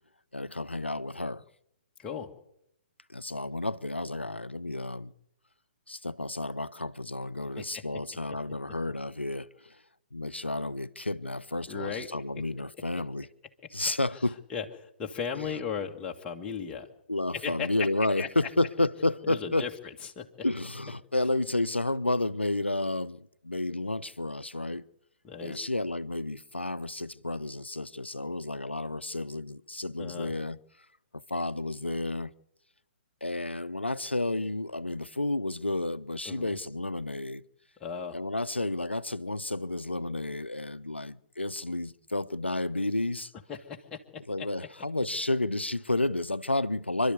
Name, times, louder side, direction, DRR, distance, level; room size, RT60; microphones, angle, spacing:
voice 1, 0.3-1.4 3.1-5.1 5.9-9.8 10.1-13.3 13.7-14.4 17.1-19.7 20.4-24.8 25.4-30.6 31.1-32.3 33.2-37.4 38.1-43.3 44.3-47.1, left 2 dB, 85° left, 0.8 m, -31 dB
voice 2, 2.0-2.3 7.6-7.8 11.7-12.1 14.5-16.9 17.4-17.7 18.2-18.3 19.3-19.7 20.2-20.3 25.2-25.7 30.0-30.3 36.3-36.6 37.8-38.2 43.5-44.5, left 6 dB, 15° left, 1.9 m, -36 dB
27.5 x 12.5 x 8.2 m
figure-of-eight pair, 125°, 6 cm